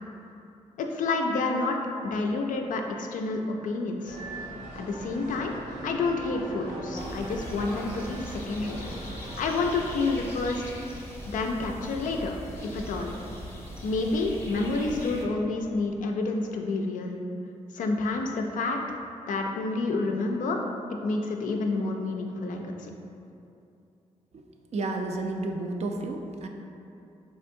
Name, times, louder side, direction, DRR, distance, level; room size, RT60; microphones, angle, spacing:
voice 1, 0.8-1.8 2.0-4.2 4.7-5.5 5.8-8.8 9.4-10.6 11.3-12.3 12.6-13.1 13.8-17.2 17.7-18.8 19.3-20.6 21.0-22.9, left 3 dB, 60° left, 2 dB, 0.4 m, -29 dB
sound 1, 4.0-10.3, right 1 dB, 80° right, 0.9 m, -40 dB
sound 2, 6.9-15.2, equal, 15° left, 0.7 m, -40 dB
voice 2, 24.7-26.5, right 2 dB, 45° right, 3 dB, 0.4 m, -31 dB
3.5 x 2.6 x 2.6 m, 2.7 s
hypercardioid pair, 45°, 15 cm